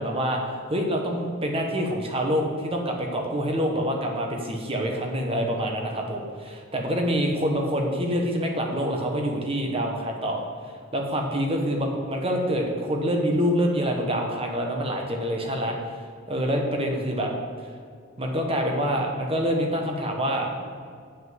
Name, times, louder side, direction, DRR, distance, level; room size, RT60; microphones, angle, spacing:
voice 1, 0.0-10.4 10.9-16.0 16.3-17.3 18.2-20.7, equal, 25° right, 1 dB, 1.3 m, -26 dB
8.5 x 6.1 x 7.6 m, 2.1 s
head